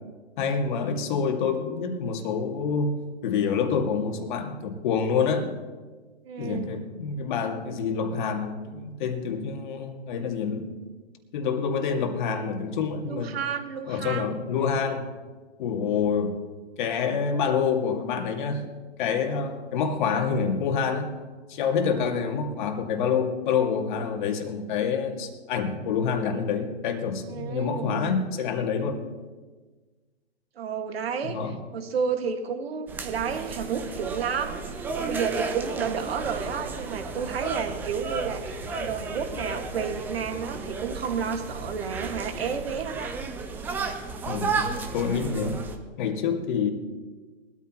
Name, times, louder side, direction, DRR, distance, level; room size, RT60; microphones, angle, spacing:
voice 1, 0.4-5.5 6.4-10.7 11.3-13.4 13.9-15.1 15.6-16.4 16.8-18.7 19.0-21.1 21.5-29.0 31.3-31.6 44.3-45.6 46.0-46.7, left 6 dB, 45° left, 4 dB, 2.2 m, -27 dB
voice 2, 6.2-6.8 13.1-14.4 27.3-28.1 30.6-43.1 45.4-45.7, right 6 dB, 60° right, 6 dB, 2.0 m, -31 dB
sound 1, 32.9-45.8, right 4 dB, 5° right, 0.5 m, -33 dB
sound 2, 33.3-38.8, right 5 dB, 40° right, 2.7 m, -47 dB
22.0 x 13.0 x 3.1 m, 1.4 s
hypercardioid pair, 135°, 35 cm